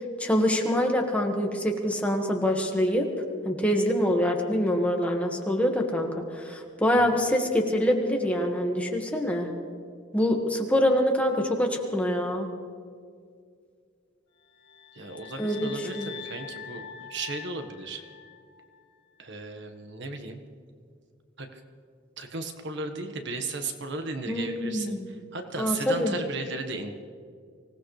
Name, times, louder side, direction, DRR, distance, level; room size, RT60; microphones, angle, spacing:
voice 1, 0.2-3.1 3.4-9.5 10.1-12.5 15.4-16.1 24.3-25.1 25.6-26.2, equal, 5° left, 1 dB, 1.7 m, -25 dB
sound 1, 14.5-18.7, left 7 dB, 70° left, 4.5 m, -44 dB
voice 2, 14.9-18.0 19.2-20.4 21.4-21.6 22.2-26.9, right 3 dB, 65° right, 5 dB, 1.4 m, -35 dB
25.0 x 17.5 x 3.3 m, 2.1 s
head